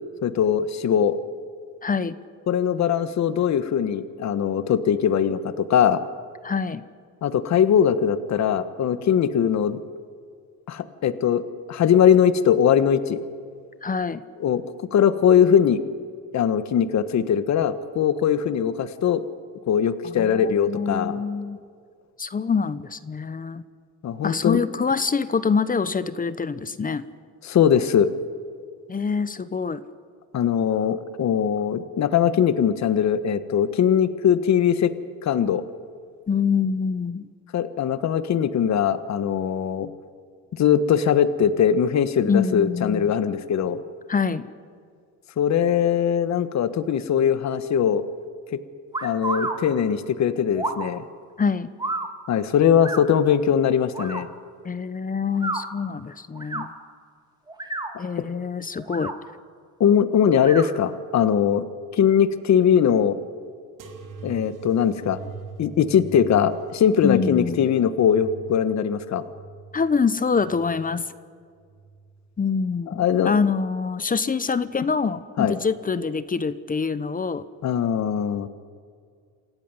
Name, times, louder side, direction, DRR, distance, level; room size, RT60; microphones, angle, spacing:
voice 1, 0.2-1.2 2.5-6.0 7.2-9.8 10.7-13.2 14.4-14.6 14.9-15.8 16.3-19.2 19.7-21.2 24.0-24.6 27.4-28.1 30.3-34.9 35.2-35.6 37.5-39.9 40.5-43.8 45.4-48.0 49.0-51.0 52.3-54.3 59.8-61.6 61.9-63.2 64.2-65.2 65.6-69.2 73.0-73.3 75.4-75.6 77.6-78.5, left 8 dB, 50° left, 13 dB, 1.4 m, -21 dB
voice 2, 1.8-2.2 6.4-6.8 13.8-14.2 20.0-21.6 22.2-23.7 24.2-27.0 28.9-29.8 36.3-37.3 42.3-43.1 44.1-44.5 51.4-51.7 54.6-56.7 58.0-59.1 67.0-67.7 69.7-71.0 72.4-77.4, left 5 dB, 25° left, 15 dB, 0.9 m, -25 dB
sound 1, 48.9-49.6 50.5-50.9 51.8-52.1 52.8-53.0 53.9-54.2 55.3-55.6 56.4-56.7 57.5-57.9 58.8-59.1 60.4-60.7, right 2 dB, 10° right, 2.1 m, -29 dB
sound 2, 63.8-71.0 71.5-72.3 73.1-73.6 74.6-74.7, right 4 dB, 65° right, 3.0 m, -42 dB
27.5 x 15.0 x 9.7 m, 2.1 s
cardioid pair, 100°, 34 cm